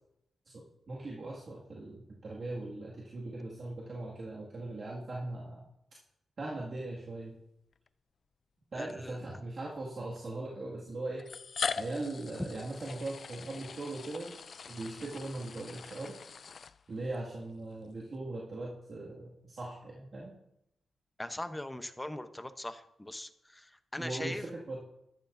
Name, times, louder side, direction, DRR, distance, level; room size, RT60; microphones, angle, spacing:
voice 1, 0.5-5.7 6.4-7.4 8.7-11.3 11.7-14.4 14.7-16.2 16.9-20.4 24.0-24.8, right 2 dB, 50° right, -5 dB, 2.0 m, -40 dB
sound 1, 7.7-7.9 8.9-9.0 10.2-10.3 11.2-17.2, left 5 dB, 55° left, 0.4 m, -41 dB
voice 2, 8.7-9.2 21.2-24.4, left 1 dB, 10° left, 10 dB, 0.8 m, -40 dB
13.0 x 12.5 x 2.6 m, 0.81 s
cardioid pair, 95°, 0 cm